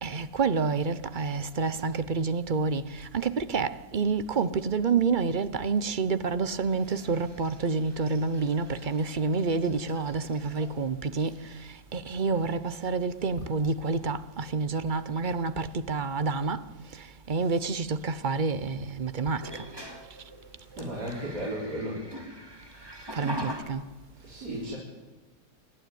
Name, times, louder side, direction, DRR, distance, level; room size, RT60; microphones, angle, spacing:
voice 1, 0.0-11.3 11.9-16.6 17.3-19.6 23.1-23.8, right 4 dB, 40° right, 0.7 m, -28 dB
sound 1, 6.7-10.8 11.2-11.6 12.6-12.7 13.1-13.6 13.9-14.2 16.2-16.3 19.3-23.6, equal, 15° right, 2.7 m, -44 dB
voice 2, 20.7-22.0 24.2-24.8, right 1 dB, 75° right, 4.8 m, -34 dB
28.0 x 12.0 x 9.3 m
omnidirectional pair, 1.8 m